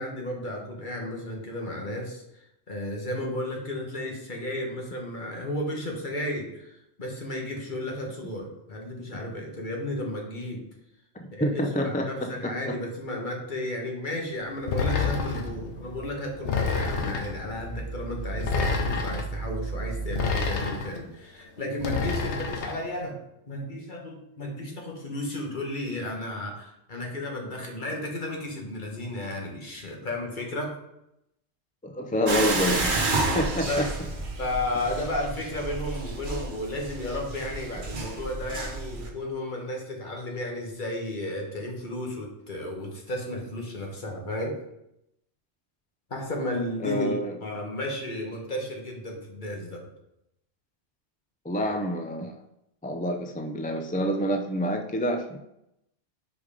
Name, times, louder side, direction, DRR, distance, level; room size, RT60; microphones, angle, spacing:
voice 1, 0.0-2.2 2.7-10.6 11.3-23.2 23.5-30.7 33.6-33.9 34.4-44.5 46.1-49.9, left 1 dB, 45° left, 0 dB, 1.5 m, -33 dB
voice 2, 11.4-12.8 31.8-33.8 46.8-47.3 51.4-52.3 52.8-55.4, equal, 15° left, 4 dB, 0.3 m, -28 dB
sound 1, 14.5-20.6, right 3 dB, 85° right, 1.6 m, -37 dB
sound 2, 14.7-15.5 16.4-17.4 18.4-19.3 20.1-21.0 21.8-22.8, left 4 dB, 75° left, 1.2 m, -28 dB
sound 3, 32.3-39.1, right 3 dB, 50° right, 1.1 m, -30 dB
5.2 x 5.0 x 4.9 m, 0.83 s
omnidirectional pair, 1.2 m